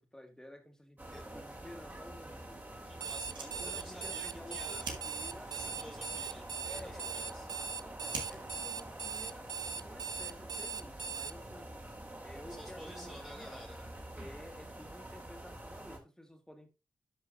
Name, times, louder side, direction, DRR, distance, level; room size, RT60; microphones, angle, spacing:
voice 1, 0.0-2.6 3.4-5.5 6.6-7.2 7.8-11.8 12.2-13.7 14.2-16.7, left 1 dB, 10° left, 2.3 m, -52 dB
sound 1, 1.0-16.0, right 1 dB, 25° right, 2.8 m, -47 dB
voice 2, 2.8-4.9 5.5-7.5 12.4-13.9, equal, 10° right, 1.4 m, -51 dB
Alarm, 2.9-11.3, right 6 dB, 60° right, 0.4 m, -40 dB
Fire, 3.2-10.0, right 4 dB, 75° right, 1.6 m, -49 dB
11.5 x 5.5 x 2.6 m
supercardioid pair, 40°, 8 cm